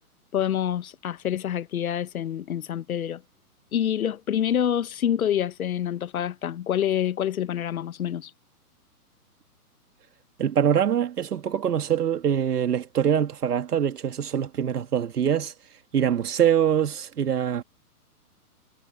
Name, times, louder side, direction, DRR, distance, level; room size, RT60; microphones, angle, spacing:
voice 1, 0.3-3.2 3.7-8.3, left 10 dB, 65° left, 1.3 m, -27 dB
voice 2, 10.4-15.5 15.9-17.6, right 9 dB, 80° right, 2.2 m, -24 dB
hypercardioid pair, 170°, 46 cm